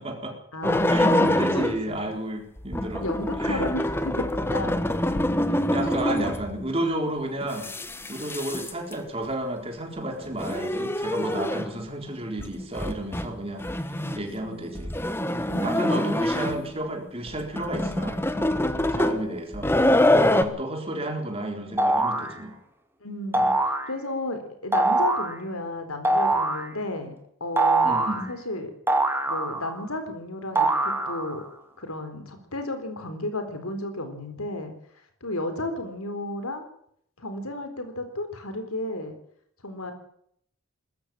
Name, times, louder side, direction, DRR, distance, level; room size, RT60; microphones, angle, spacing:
voice 1, 0.0-0.4 0.9-3.1 3.4-3.7 5.5-7.7 8.1-15.0 15.6-19.7 20.3-22.6 23.3-23.5 27.8-28.3, right 1 dB, 25° right, 3 dB, 4.0 m, -32 dB
voice 2, 0.5-2.0 3.0-4.8 14.0-14.7 15.5-16.1 23.0-27.1 27.4-28.0 28.3-28.7 29.3-31.4 31.8-34.7 35.2-36.6 37.2-39.1 39.6-39.9, left 2 dB, 80° left, 8 dB, 4.2 m, -33 dB
sound 1, 0.6-1.9 2.6-6.6 7.4-8.9 10.2-11.8 12.4-12.5 12.7-13.3 13.6-14.2 14.7-16.7 17.3-20.4, left 1 dB, 10° left, 1.2 m, -25 dB
sound 2, 21.8-22.3 23.3-23.9 24.7-25.3 26.0-26.7 27.6-28.2 28.9-29.8 30.6-31.4, right 2 dB, 10° right, 2.1 m, -23 dB
20.0 x 14.0 x 9.1 m, 0.68 s
head